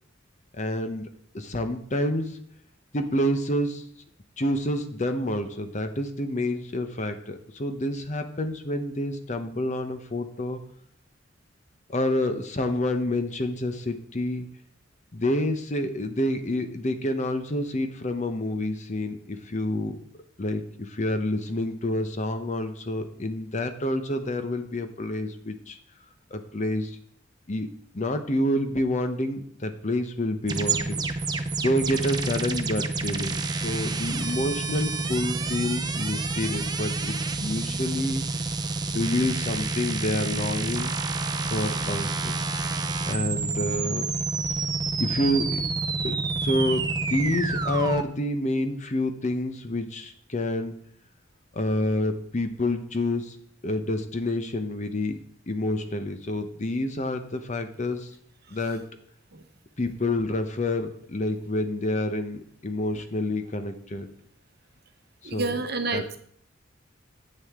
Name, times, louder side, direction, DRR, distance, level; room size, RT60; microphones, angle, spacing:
voice 1, 0.6-2.4 2.9-3.8 4.4-10.6 11.9-14.5 15.1-20.0 20.4-25.8 26.3-27.0 27.5-31.0 31.6-38.2 38.9-40.9 41.5-42.4 43.1-44.1 45.0-45.6 46.0-50.8 51.5-53.4 53.6-55.2 55.5-58.1 58.5-58.8 59.8-64.1 65.2-65.5 65.9-66.0, left 1 dB, 40° left, 8 dB, 0.8 m, -28 dB
sound 1, 30.5-48.0, right 3 dB, 20° right, 0.6 m, -29 dB
voice 2, 65.2-66.2, right 3 dB, 55° right, 7 dB, 0.9 m, -30 dB
9.7 x 7.7 x 3.6 m, 0.62 s
head